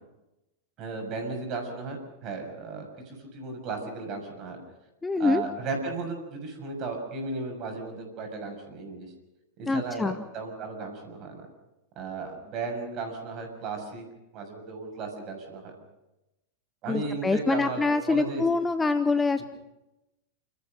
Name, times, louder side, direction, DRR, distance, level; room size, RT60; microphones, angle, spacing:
voice 1, 0.8-4.6 5.2-9.1 9.6-11.5 11.9-14.0 14.3-15.7 16.8-18.4, right 3 dB, 35° right, 3 dB, 6.7 m, -35 dB
voice 2, 5.0-5.4 9.7-10.2 16.9-19.4, left 3 dB, 10° left, 11 dB, 0.8 m, -25 dB
30.0 x 14.0 x 6.5 m, 0.95 s
figure-of-eight pair, 90°, 0 cm